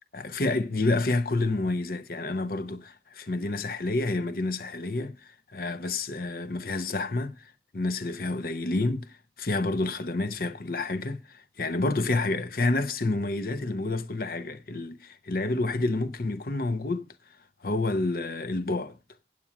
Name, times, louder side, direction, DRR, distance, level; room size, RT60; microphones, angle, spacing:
voice 1, 0.1-5.2 5.5-7.4 7.7-17.1 17.6-19.0, left 2 dB, 50° left, 0.8 m, -29 dB
8.6 x 8.6 x 5.8 m
head